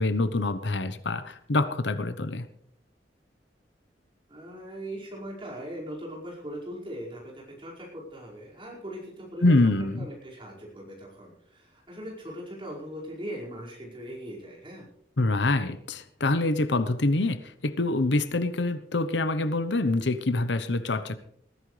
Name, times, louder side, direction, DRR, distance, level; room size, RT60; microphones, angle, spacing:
voice 1, 0.0-2.5 9.4-10.1 15.2-21.2, left 2 dB, 80° left, 12 dB, 1.0 m, -25 dB
voice 2, 4.3-9.6 10.0-14.9, equal, 30° right, -4 dB, 5.3 m, -40 dB
20.0 x 15.0 x 3.3 m, 0.67 s
head